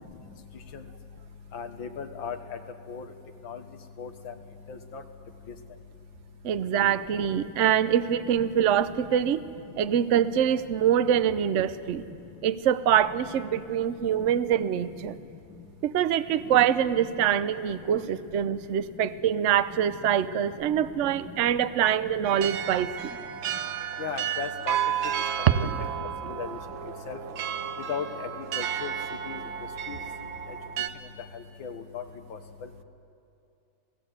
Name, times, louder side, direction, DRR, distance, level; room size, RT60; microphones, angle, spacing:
voice 1, 1.5-2.4 2.9-3.0 3.4-3.6 4.0-4.3 4.7-5.0 24.0-24.8 25.8-25.9 26.3-26.6 27.1-27.2 27.9-28.3 28.6-28.9 29.3-29.4 29.9-30.0 31.6-32.0, left 6 dB, 80° left, 7 dB, 2.1 m, -35 dB
voice 2, 6.4-9.4 9.8-12.0 12.4-15.1 15.8-23.2 25.5-25.8, right 9 dB, 60° right, 12 dB, 0.8 m, -24 dB
sound 1, 22.2-30.9, right 9 dB, 90° right, 1.7 m, -32 dB
28.0 x 18.0 x 8.1 m, 2.7 s
omnidirectional pair, 2.1 m